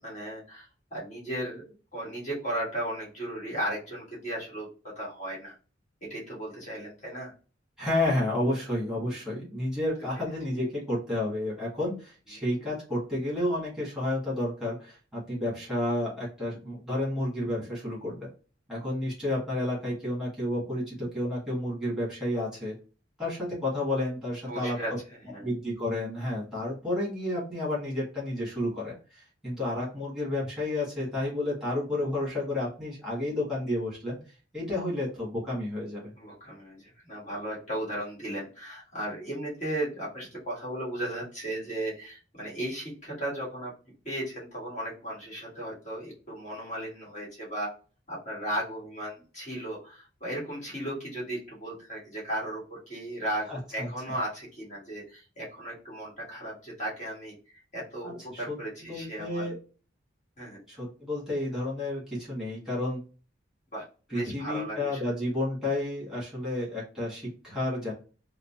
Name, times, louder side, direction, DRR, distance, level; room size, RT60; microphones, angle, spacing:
voice 1, 0.0-5.5 6.0-7.3 12.3-12.4 24.5-24.9 25.2-25.5 36.2-43.7 44.0-47.7 48.1-57.3 57.7-59.5 60.4-60.6 63.7-65.0, right 1 dB, 40° left, -6 dB, 1.4 m, -36 dB
voice 2, 7.8-18.3 18.7-22.7 23.2-24.8 25.4-34.2 34.5-36.1 53.5-54.2 58.0-58.6 58.8-59.6 60.7-63.0 64.1-67.9, left 1 dB, 5° right, -7 dB, 1.6 m, -31 dB
3.7 x 2.0 x 2.5 m, 0.36 s
head